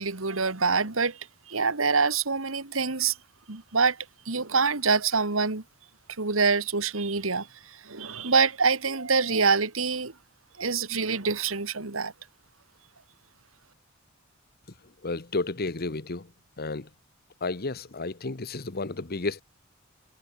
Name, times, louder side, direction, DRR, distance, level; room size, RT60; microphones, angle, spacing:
voice 1, 0.0-3.2 3.5-5.6 6.2-10.1 10.6-12.1, right 4 dB, 80° right, 2.2 m, -26 dB
voice 2, 15.0-16.3 16.6-16.9 17.4-19.4, left 3 dB, 50° left, 1.3 m, -32 dB
head